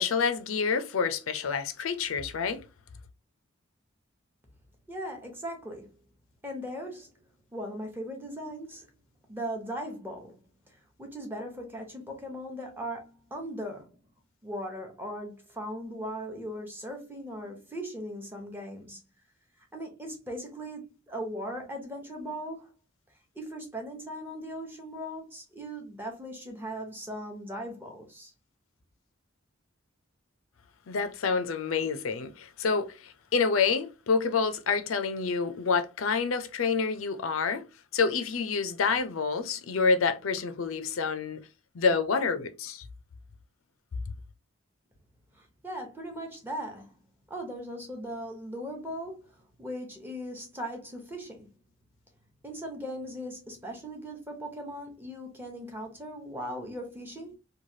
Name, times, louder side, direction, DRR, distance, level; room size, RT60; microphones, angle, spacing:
voice 1, 0.0-2.6 30.9-37.6 37.9-41.4 41.7-42.9, left 5 dB, 85° left, 0.5 m, -28 dB
voice 2, 4.9-5.9 6.4-7.1 7.5-8.9 9.3-10.4 11.0-14.0 14.4-19.0 19.7-22.7 23.4-28.3 45.3-46.9 47.3-51.5 52.4-57.4, equal, 10° right, 0.8 m, -38 dB
3.1 x 2.2 x 2.7 m
head